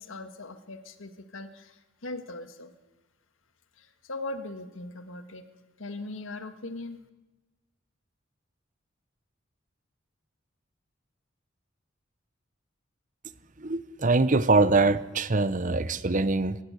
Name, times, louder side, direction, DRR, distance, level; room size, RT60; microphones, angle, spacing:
voice 1, 0.0-2.7 3.8-5.5 5.8-7.0, left 2 dB, 85° left, 9 dB, 1.8 m, -39 dB
voice 2, 13.6-16.6, right 3 dB, 40° right, 14 dB, 0.9 m, -23 dB
23.5 x 17.0 x 8.2 m, 1.1 s
head